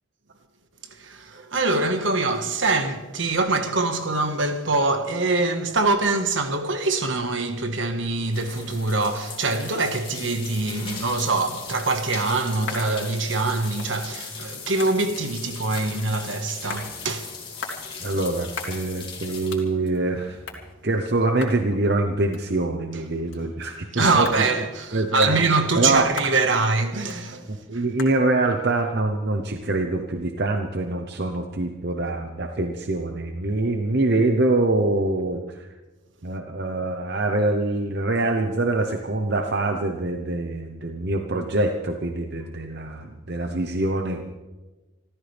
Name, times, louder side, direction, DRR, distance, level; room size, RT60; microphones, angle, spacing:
voice 1, 0.8-18.1 22.9-23.0 23.9-27.8, right 3 dB, 75° right, 1.6 m, -24 dB
sound 1, 7.5-20.7, left 5 dB, 25° left, 3.2 m, -39 dB
sound 2, 12.2-30.2, left 4 dB, 80° left, 3.0 m, -42 dB
voice 2, 18.0-20.4 20.8-24.3 24.9-25.4 25.7-26.1 27.5-35.7 36.2-44.2, right 2 dB, 55° right, 0.9 m, -24 dB
27.0 x 14.0 x 3.5 m
head